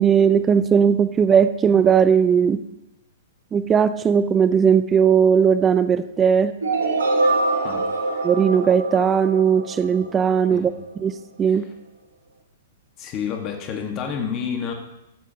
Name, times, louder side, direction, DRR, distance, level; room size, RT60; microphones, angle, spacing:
voice 1, 0.0-2.6 3.5-6.5 8.2-10.7 11.0-11.1 11.4-11.7, right 7 dB, 20° right, 12 dB, 0.5 m, -18 dB
sound 1, 6.6-10.5, right 2 dB, 80° right, 1.6 m, -24 dB
voice 2, 13.0-14.7, left 7 dB, 35° left, 2 dB, 1.5 m, -29 dB
15.0 x 7.2 x 2.9 m, 0.90 s
hypercardioid pair, 120°, 0 cm